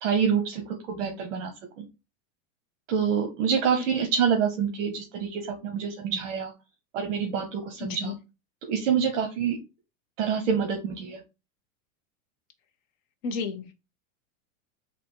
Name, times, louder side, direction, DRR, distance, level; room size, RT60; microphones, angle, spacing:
voice 1, 0.0-1.8 2.9-6.5 6.9-8.1 8.7-9.6 10.2-11.2, right 7 dB, 65° right, 5 dB, 0.9 m, -27 dB
voice 2, 7.8-8.1 13.2-13.7, left 5 dB, 35° left, 7 dB, 0.6 m, -32 dB
3.5 x 2.7 x 4.4 m, 0.27 s
supercardioid pair, 170°, 41 cm